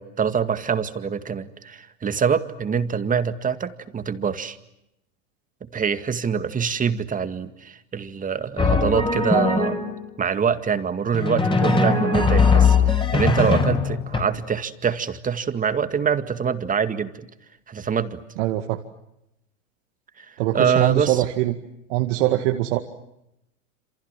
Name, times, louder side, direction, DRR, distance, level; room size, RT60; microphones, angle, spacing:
voice 1, 0.0-4.6 5.7-9.8 10.2-17.3 17.7-18.2 20.2-20.3 20.5-21.2, right 6 dB, 20° right, 10 dB, 2.1 m, -25 dB
Drum, 8.6-10.1 11.1-14.2, left 4 dB, 10° left, 4.5 m, -20 dB
voice 2, 18.4-18.8 20.4-21.6 21.9-22.8, right 15 dB, 60° right, 5 dB, 2.2 m, -22 dB
28.0 x 28.0 x 7.6 m, 0.85 s
hypercardioid pair, 105°, 40 cm